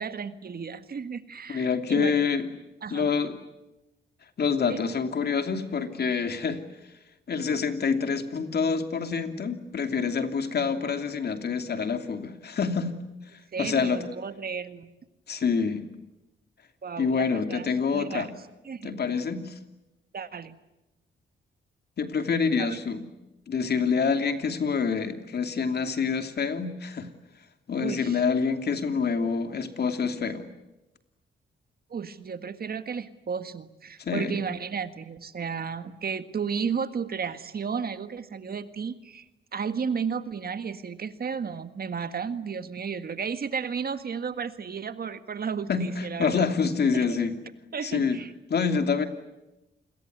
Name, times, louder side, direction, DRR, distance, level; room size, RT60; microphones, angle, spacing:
voice 1, 0.0-2.1 2.8-3.1 4.7-4.8 13.5-14.9 16.8-18.4 18.7-19.0 20.1-20.6 22.6-22.8 27.8-28.2 31.9-39.3 39.5-46.5 46.9-47.2 47.7-48.3, right 6 dB, 50° right, 11 dB, 1.8 m, -33 dB
voice 2, 1.5-2.5 2.9-3.3 4.4-6.6 7.3-12.9 13.6-14.1 15.3-15.8 17.0-18.3 18.8-19.5 22.0-23.0 23.5-27.1 27.7-30.5 34.0-34.4 45.7-47.3 47.8-48.2 48.5-49.1, left 5 dB, 55° left, 7 dB, 2.9 m, -26 dB
28.0 x 22.0 x 9.5 m, 0.98 s
cardioid pair, 75°, 19 cm